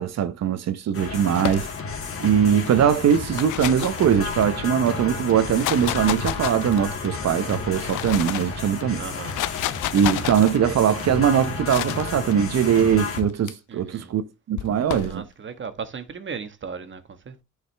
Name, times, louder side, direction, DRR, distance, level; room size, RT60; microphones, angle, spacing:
voice 1, 0.0-1.7 2.2-9.0 9.9-15.2, right 8 dB, 60° right, 0.8 m, -21 dB
sound 1, 0.9-13.2, left 4 dB, 45° left, 2.2 m, -32 dB
sound 2, 1.4-2.1 3.1-4.6 5.3-7.0 7.6-8.5 9.1-10.5 11.6-12.1 13.2-13.5 14.6-15.2, left 14 dB, 80° left, 0.6 m, -30 dB
voice 2, 9.0-9.4 13.7-14.1 15.0-17.4, right 5 dB, 40° right, 1.4 m, -36 dB
9.8 x 5.0 x 3.3 m
cardioid pair, 90°, 30 cm